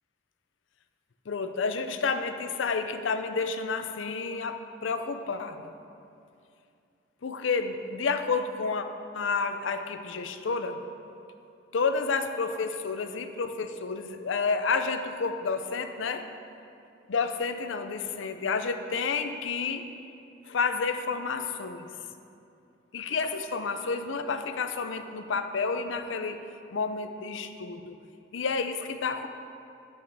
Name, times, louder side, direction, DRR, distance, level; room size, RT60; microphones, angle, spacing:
voice 1, 1.3-5.7 7.2-8.9 9.1-10.8 11.7-16.3 17.1-19.9 20.5-21.9 22.9-26.4 26.7-28.0 28.3-29.3, left 4 dB, 90° left, 8 dB, 0.5 m, -30 dB
10.0 x 6.0 x 4.6 m, 2.6 s
head